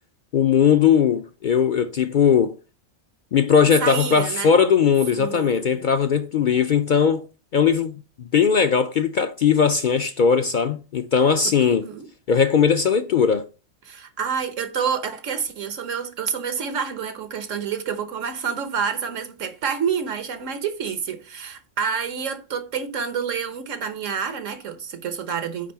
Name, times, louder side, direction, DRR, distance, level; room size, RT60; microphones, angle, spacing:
voice 1, 0.3-2.5 3.3-7.3 7.5-11.8 12.3-13.5, left 7 dB, 60° left, 0.5 m, -19 dB
voice 2, 3.8-4.5 5.1-5.9 11.4-12.1 13.8-25.7, right 7 dB, 85° right, 1.4 m, -28 dB
9.3 x 3.4 x 5.5 m
omnidirectional pair, 1.3 m